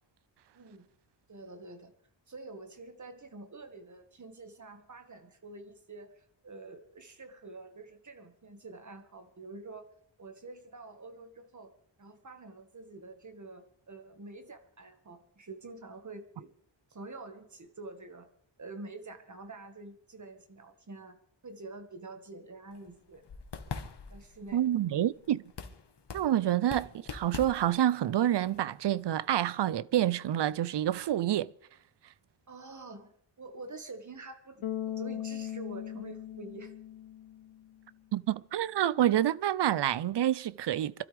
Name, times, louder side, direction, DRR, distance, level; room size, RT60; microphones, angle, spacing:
voice 1, 0.5-0.9 1.3-1.9 2.3-9.9 10.2-11.7 12.0-16.5 16.9-18.3 18.6-21.2 21.4-23.2 24.1-24.6 32.5-36.7, right 3 dB, 40° right, 1.7 m, -47 dB
sound 1, 22.7-29.4, left 5 dB, 60° left, 1.5 m, -45 dB
voice 2, 24.5-25.4 26.1-31.5 38.1-40.9, right 11 dB, 65° right, 0.6 m, -28 dB
Bass guitar, 34.6-37.7, left 11 dB, 90° left, 1.0 m, -39 dB
27.5 x 12.5 x 3.4 m
wide cardioid pair, 145°, 46 cm